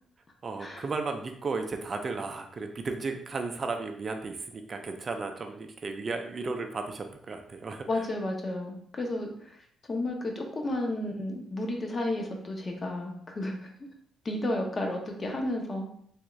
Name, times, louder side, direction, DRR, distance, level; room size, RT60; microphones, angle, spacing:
voice 1, 0.4-8.0, right 4 dB, 40° right, 5 dB, 0.4 m, -34 dB
voice 2, 7.9-9.6 9.9-13.9 14.2-15.9, left 1 dB, 35° left, 2 dB, 0.7 m, -32 dB
3.5 x 2.4 x 3.0 m, 0.65 s
cardioid pair, 90°, 0 cm